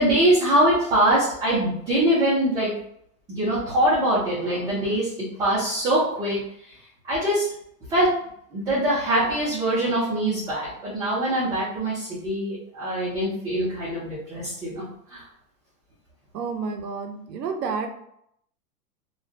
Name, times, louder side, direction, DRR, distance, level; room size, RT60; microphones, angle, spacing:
voice 1, 0.0-2.7 3.3-5.1 5.4-6.4 7.1-7.5 7.9-8.1 8.5-14.8 15.1-15.2, right 1 dB, 10° right, -11 dB, 0.3 m, -23 dB
voice 2, 16.3-17.9, right 5 dB, 85° right, 4 dB, 0.6 m, -30 dB
2.2 x 2.2 x 2.5 m, 0.71 s
hypercardioid pair, 110°, 47 cm